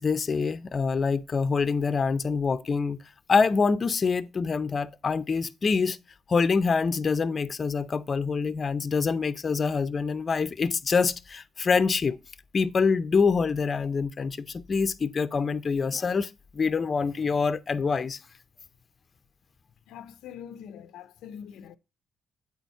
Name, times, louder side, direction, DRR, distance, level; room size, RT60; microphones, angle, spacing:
voice 1, 0.0-3.0 3.3-6.0 6.3-12.2 12.5-18.2, left 5 dB, 40° left, 0.5 m, -25 dB
voice 2, 19.9-21.8, left 8 dB, 85° left, 0.5 m, -43 dB
8.5 x 4.2 x 4.5 m
cardioid pair, 90°, 0 cm